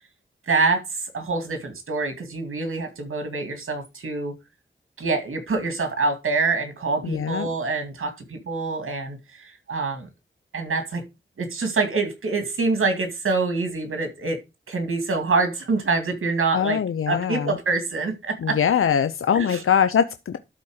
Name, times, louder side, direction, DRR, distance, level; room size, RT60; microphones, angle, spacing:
voice 1, 0.5-4.4 5.0-10.1 10.5-11.0 11.4-14.4 14.7-16.8 17.1-18.6 19.4-19.6, right 3 dB, 80° right, 2.3 m, -25 dB
voice 2, 7.0-7.5 16.5-17.6 18.4-20.4, left 8 dB, 90° left, 0.7 m, -22 dB
12.5 x 4.2 x 6.4 m
cardioid pair, 45°, 21 cm